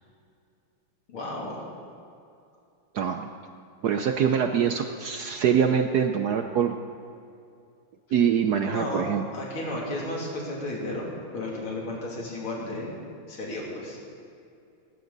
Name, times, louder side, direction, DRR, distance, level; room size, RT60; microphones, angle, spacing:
voice 1, 1.1-1.6 8.6-9.0 9.3-11.1 11.3-12.9 13.3-14.0, left 1 dB, 80° left, -3 dB, 3.7 m, -33 dB
voice 2, 2.9-3.3 3.8-6.8 8.1-9.2, right 8 dB, 70° right, 6 dB, 0.9 m, -24 dB
19.0 x 15.5 x 4.0 m, 2.5 s
omnidirectional pair, 2.3 m